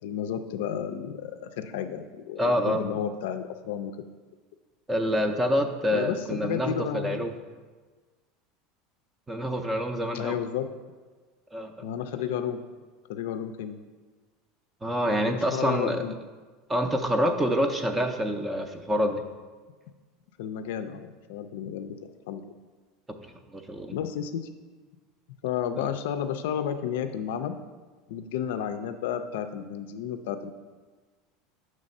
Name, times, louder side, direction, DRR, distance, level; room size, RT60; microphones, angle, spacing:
voice 1, 0.0-3.9 5.9-7.2 10.1-10.7 11.8-12.6 13.1-13.8 15.3-16.1 20.4-22.0 22.3-22.4 23.9-24.5 25.4-27.6 28.1-30.5, left 9 dB, 80° left, 8 dB, 0.4 m, -32 dB
voice 2, 2.4-2.8 4.9-7.3 9.3-10.3 11.5-11.7 14.8-16.0 16.7-19.2 23.1-24.0, equal, 15° right, 5 dB, 0.5 m, -27 dB
6.5 x 3.2 x 5.3 m, 1.4 s
supercardioid pair, 115°, 0 cm